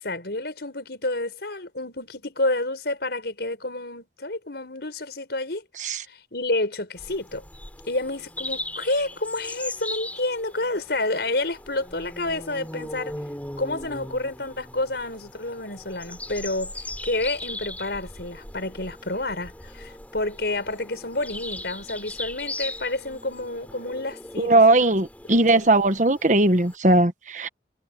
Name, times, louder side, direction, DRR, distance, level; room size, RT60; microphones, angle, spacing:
voice 1, 0.0-5.6 6.1-7.4 7.9-13.2 13.6-25.0 25.3-25.7, left 2 dB, 65° left, 5.5 m, -29 dB
sound 1, 7.0-26.8, left 1 dB, 10° left, 6.0 m, -39 dB
voice 2, 24.4-27.5, right 2 dB, 45° right, 1.3 m, -19 dB
head